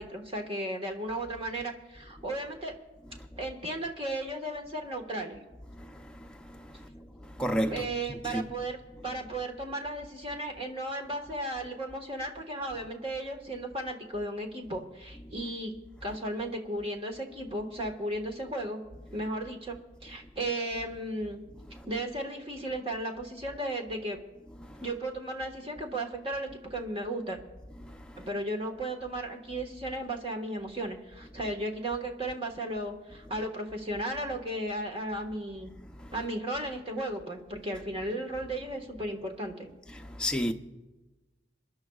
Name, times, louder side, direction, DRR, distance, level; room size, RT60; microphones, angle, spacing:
voice 1, 0.0-2.7 3.4-5.4 7.7-15.7 16.0-18.8 19.1-19.8 20.0-21.4 21.8-24.2 24.8-27.4 28.2-35.7 36.1-39.7, right 1 dB, 30° right, 1.5 m, -35 dB
voice 2, 5.7-8.5 21.7-21.9 24.6-24.8 27.8-28.3 35.8-36.1 39.9-40.5, equal, 5° left, 0.6 m, -35 dB
27.5 x 11.5 x 2.4 m
head